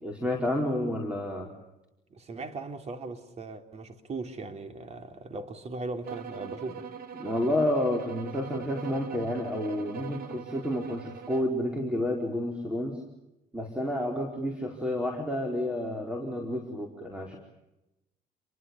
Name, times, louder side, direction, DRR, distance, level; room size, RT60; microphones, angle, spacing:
voice 1, 0.0-1.5 7.2-13.0 13.5-17.4, left 1 dB, 5° right, 4.8 m, -30 dB
voice 2, 2.1-6.9, right 3 dB, 40° right, 3.5 m, -38 dB
sound 1, 6.0-11.6, right 7 dB, 65° right, 3.0 m, -41 dB
29.5 x 23.0 x 7.3 m
cardioid pair, 110°, 17 cm